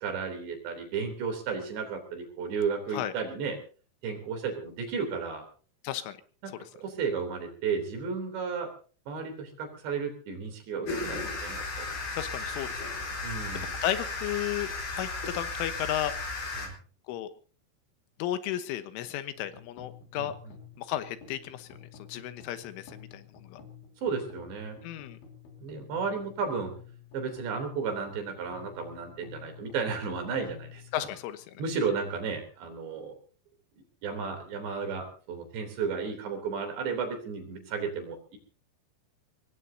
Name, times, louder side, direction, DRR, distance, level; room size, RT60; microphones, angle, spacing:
voice 1, 0.0-3.6 4.0-5.5 6.4-8.7 9.1-11.9 13.2-13.8 16.6-16.8 20.1-20.3 24.0-24.8 25.6-26.7 27.1-30.8 31.6-33.1 34.0-38.4, right 5 dB, 65° right, 5 dB, 5.4 m, -33 dB
voice 2, 5.8-6.2 11.0-11.3 12.1-12.9 13.8-16.2 17.1-17.3 18.2-20.4 20.8-23.6 24.8-25.2 30.9-31.6, left 12 dB, 85° left, 10 dB, 3.6 m, -34 dB
sound 1, 10.9-16.7, left 3 dB, 50° left, 6.1 m, -35 dB
sound 2, 19.3-31.7, left 7 dB, 70° left, 5.6 m, -51 dB
24.5 x 18.5 x 2.8 m, 0.39 s
omnidirectional pair, 5.6 m